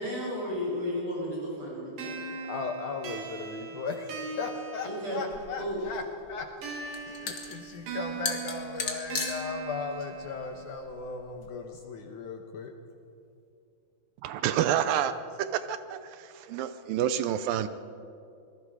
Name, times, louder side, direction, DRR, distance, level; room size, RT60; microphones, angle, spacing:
voice 1, 0.0-2.2 4.8-5.2 5.6-5.8, equal, 30° right, 7.9 m, -33 dB
sound 1, 2.0-5.6 6.6-10.6, right 5 dB, 60° right, 4.1 m, -40 dB
voice 2, 2.4-6.5 6.8-12.7, left 5 dB, 70° left, 2.0 m, -37 dB
sound 2, 5.3-11.5, left 5 dB, 45° left, 1.9 m, -38 dB
voice 3, 14.2-15.1 15.4-17.7, right 10 dB, 80° right, 2.1 m, -28 dB
26.5 x 20.5 x 4.9 m
omnidirectional pair, 4.7 m